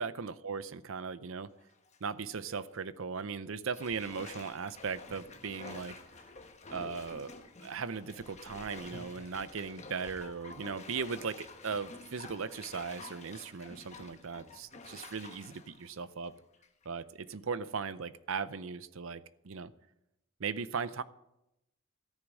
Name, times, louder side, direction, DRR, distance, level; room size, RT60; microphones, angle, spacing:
voice 1, 0.0-1.5 2.0-5.9 6.7-7.3 7.6-16.3 16.9-19.7 20.4-21.0, right 5 dB, 60° right, 15 dB, 0.6 m, -38 dB
Bathtub (filling or washing), 1.6-2.0 2.4-2.5 3.7-16.9 17.3-17.4, left 3 dB, 30° left, 1.1 m, -50 dB
14.0 x 9.8 x 6.2 m, 0.86 s
head